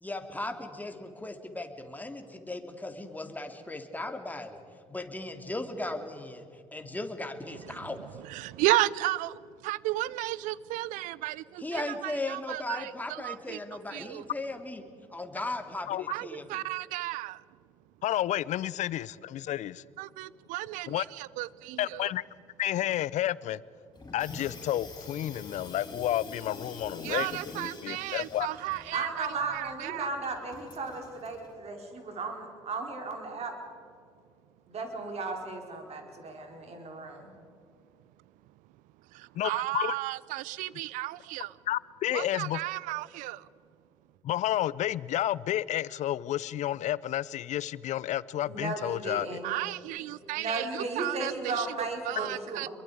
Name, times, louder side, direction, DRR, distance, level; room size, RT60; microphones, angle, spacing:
voice 1, 0.0-4.6 4.9-6.4 6.7-8.0 11.6-14.8 15.1-16.6, left 2 dB, 10° left, 5 dB, 2.9 m, -37 dB
voice 2, 8.3-13.6 13.9-14.2 16.1-17.4 20.0-22.1 27.0-30.1 39.1-41.5 42.1-43.4 49.4-51.7 52.0-52.7, right 17 dB, 70° right, 21 dB, 0.6 m, -33 dB
voice 3, 18.0-19.8 20.9-21.0 21.8-22.2 22.6-23.6 24.1-28.5 39.3-40.0 41.7-42.6 44.2-49.4, left 13 dB, 60° left, 21 dB, 0.6 m, -31 dB
Water tap faucet / Sink (filling or washing), 23.9-31.5, left 2 dB, 30° left, 7.5 m, -46 dB
voice 4, 28.8-33.5 34.7-37.3 48.4-49.5 50.3-52.7, right 3 dB, 50° right, 3 dB, 4.7 m, -35 dB
26.5 x 23.0 x 5.1 m, 2.4 s
hypercardioid pair, 55°, 14 cm